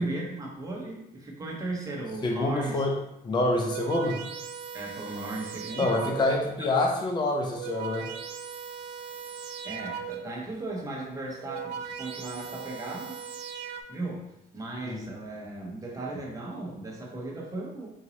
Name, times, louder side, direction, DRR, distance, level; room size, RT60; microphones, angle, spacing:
voice 1, 0.0-2.8 4.7-5.9 9.6-13.2 13.9-17.9, right 2 dB, 20° right, -3 dB, 1.0 m, -36 dB
voice 2, 2.2-2.9 3.2-4.2 5.8-8.1 14.9-15.0, left 2 dB, 25° left, 1 dB, 0.6 m, -26 dB
sound 1, 3.6-6.6 7.3-10.5 11.2-13.8, right 7 dB, 80° right, 0.4 m, -39 dB
3.9 x 2.7 x 3.0 m, 0.82 s
cardioid pair, 110°, 17 cm